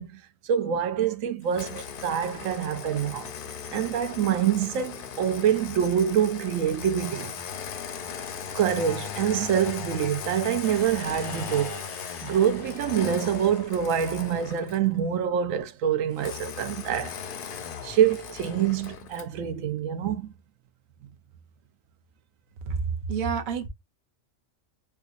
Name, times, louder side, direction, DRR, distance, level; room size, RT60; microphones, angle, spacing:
voice 1, 0.0-3.3 3.7-7.3 8.5-11.8 12.2-17.2 17.8-20.3, right 9 dB, 75° right, 0.9 m, -26 dB
Engine starting, 1.5-14.9 16.2-19.4, left 7 dB, 60° left, 0.6 m, -38 dB
sound 1, 10.6-14.5, right 2 dB, 20° right, 1.1 m, -48 dB
voice 2, 22.7-23.7, right 5 dB, 50° right, 0.7 m, -28 dB
4.6 x 2.3 x 2.4 m
omnidirectional pair, 1.4 m